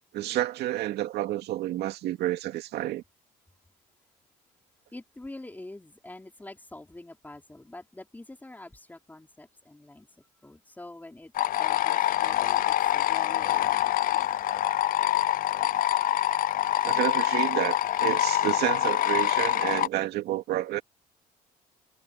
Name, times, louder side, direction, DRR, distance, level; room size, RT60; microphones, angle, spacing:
voice 1, 0.1-3.0 16.8-20.8, right 14 dB, 80° right, 2.3 m, -30 dB
voice 2, 4.9-11.3 11.6-14.4, left 2 dB, 10° left, 4.4 m, -46 dB
sound 1, 11.3-19.9, left 13 dB, 55° left, 0.6 m, -25 dB
cardioid pair, 110°, 17 cm